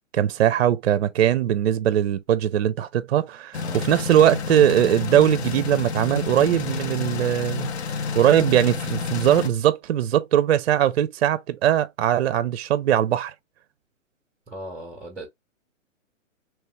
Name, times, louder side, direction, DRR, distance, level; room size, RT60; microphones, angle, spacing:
voice 1, 0.1-7.7 8.2-13.3, right 10 dB, 55° right, 0.5 m, -20 dB
sound 1, 3.5-9.5, left 5 dB, 55° left, 0.7 m, -29 dB
voice 2, 14.5-15.3, right 1 dB, ahead, 0.6 m, -37 dB
3.4 x 3.1 x 3.1 m
figure-of-eight pair, 120°, 39 cm